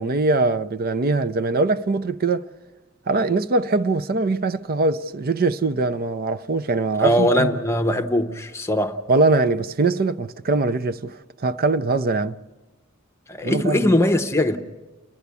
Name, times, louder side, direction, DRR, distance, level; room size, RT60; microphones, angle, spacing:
voice 1, 0.0-2.5 3.1-7.5 9.1-12.4 13.4-13.9, right 3 dB, 45° right, 0.6 m, -22 dB
voice 2, 7.0-9.0 13.3-14.6, left 1 dB, 15° left, 0.8 m, -20 dB
29.5 x 10.5 x 8.3 m
head